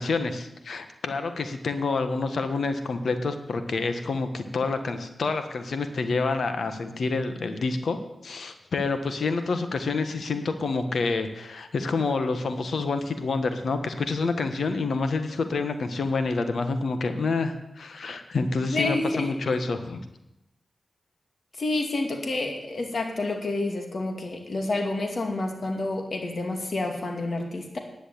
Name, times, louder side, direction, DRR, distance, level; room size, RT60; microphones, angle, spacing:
voice 1, 0.0-8.0 8.2-20.0, left 3 dB, 75° left, 8 dB, 1.3 m, -28 dB
voice 2, 18.7-19.6 21.6-27.8, left 2 dB, 60° left, 3 dB, 2.4 m, -29 dB
10.5 x 7.9 x 8.5 m, 0.90 s
cardioid pair, 45°, 0 cm